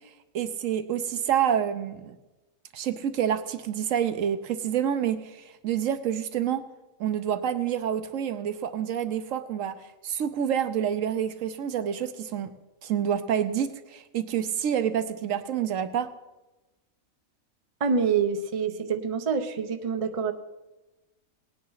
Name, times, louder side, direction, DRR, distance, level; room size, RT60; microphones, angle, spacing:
voice 1, 0.3-2.2 2.7-6.6 7.0-9.7 10.0-12.5 12.8-16.1, right 9 dB, 70° right, 10 dB, 1.0 m, -28 dB
voice 2, 17.8-20.3, right 6 dB, 35° right, 7 dB, 0.6 m, -26 dB
18.5 x 9.5 x 4.0 m, 1.1 s
omnidirectional pair, 1.4 m